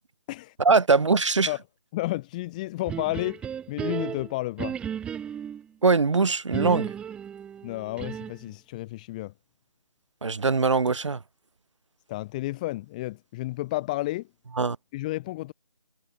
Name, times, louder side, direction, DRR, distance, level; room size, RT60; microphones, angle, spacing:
voice 1, 0.6-1.5 5.8-6.9 10.2-11.2 14.6-14.8, right 4 dB, 50° right, 1.4 m, -22 dB
voice 2, 1.9-4.7 7.6-9.3 12.1-14.3 14.9-15.5, left 18 dB, 10° left, 1.5 m, -31 dB
sound 1, 2.9-5.7 6.5-8.5, right 8 dB, 5° right, 2.9 m, -34 dB
figure-of-eight pair, 160°, 20 cm